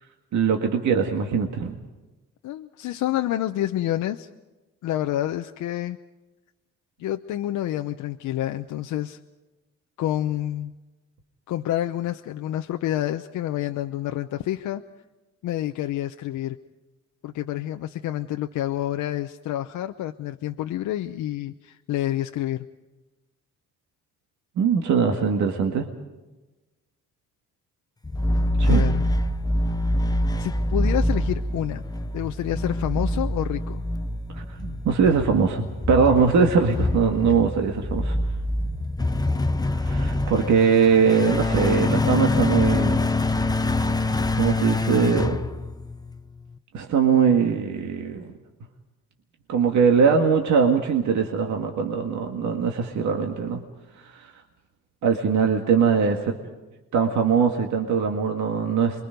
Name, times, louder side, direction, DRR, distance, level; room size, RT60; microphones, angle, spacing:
voice 1, 0.3-1.8 24.6-25.9 28.6-28.9 34.3-38.2 39.7-43.0 43.7-45.4 46.7-48.2 49.5-53.6 54.1-54.3 55.0-56.4 56.9-59.0, right 6 dB, 70° right, 3 dB, 1.9 m, -21 dB
voice 2, 2.4-4.3 4.8-6.0 7.0-9.2 10.0-10.7 11.5-14.8 15.4-16.6 17.2-22.7 28.7-29.0 30.4-31.8 32.1-33.8, left 13 dB, 80° left, 6 dB, 0.8 m, -28 dB
sound 1, 28.0-46.2, left 1 dB, 15° left, 0.7 m, -25 dB
28.0 x 22.5 x 5.3 m, 1.1 s
cardioid pair, 90°, 30 cm